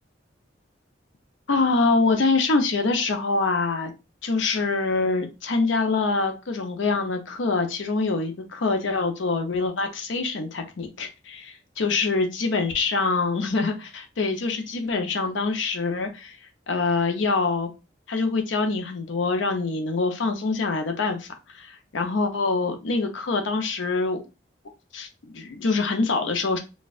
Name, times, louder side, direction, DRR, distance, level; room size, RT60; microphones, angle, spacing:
voice 1, 1.5-3.9 4.2-16.4 16.7-17.7 18.1-21.3 21.5-24.2 24.9-25.1 25.3-26.6, left 3 dB, 85° left, 5 dB, 0.6 m, -25 dB
4.1 x 2.3 x 2.3 m, 0.28 s
head